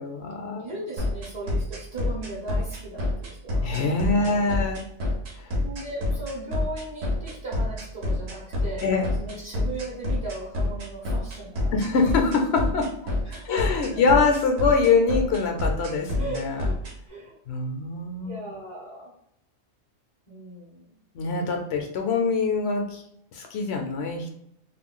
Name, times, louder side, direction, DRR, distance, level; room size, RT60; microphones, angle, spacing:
voice 1, 0.0-0.7 3.6-4.8 5.4-5.5 8.8-9.1 11.7-13.1 13.4-16.6 17.5-18.4 21.1-23.0 23.3-24.3, left 4 dB, 70° left, 3 dB, 0.8 m, -24 dB
voice 2, 0.6-3.7 4.2-4.5 5.6-8.8 9.2-11.8 13.2-14.0 16.2-16.7 17.1-17.4 18.2-19.1 20.3-20.9, right 1 dB, 30° right, -6 dB, 0.7 m, -37 dB
sound 1, 1.0-16.9, left 2 dB, 65° right, 1.0 m, -27 dB
2.4 x 2.2 x 3.7 m, 0.72 s
omnidirectional pair, 1.2 m